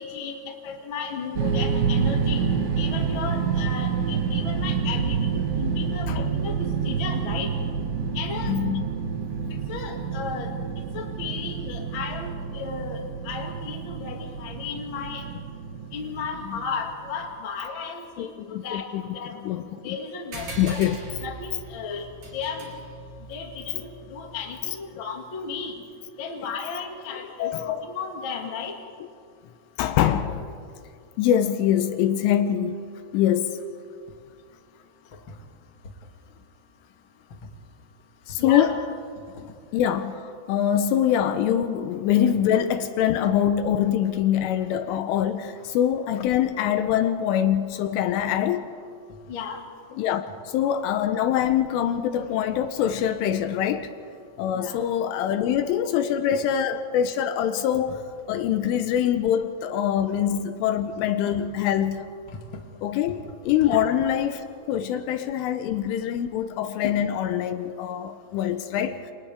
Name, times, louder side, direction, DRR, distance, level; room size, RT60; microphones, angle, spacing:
voice 1, 0.0-2.4 2.8-5.2 5.6-6.5 6.8-7.5 8.1-8.5 9.7-10.5 10.9-12.3 12.5-15.2 15.9-18.3 18.6-18.8 19.1-19.4 19.8-20.8 21.2-22.7 23.3-25.7 26.2-28.7 38.4-38.7 49.3-49.6 54.5-54.8 63.6-63.9, left 5 dB, 50° left, 1 dB, 1.5 m, -34 dB
sound 1, 1.4-17.2, right 6 dB, 65° right, 2.3 m, -28 dB
voice 2, 8.4-8.9 9.3-9.6 16.5-16.6 18.2-19.2 19.4-20.0 20.6-21.0 27.4-27.9 29.8-30.5 31.2-32.9 33.1-33.6 38.3-38.8 39.7-48.7 50.0-53.9 54.4-58.0 58.3-62.0 62.8-69.0, left 10 dB, 80° left, 9 dB, 3.2 m, -24 dB
sound 2, 20.3-25.2, right 2 dB, 45° right, 5.0 m, -40 dB
28.0 x 28.0 x 3.6 m, 2.3 s
omnidirectional pair, 6.0 m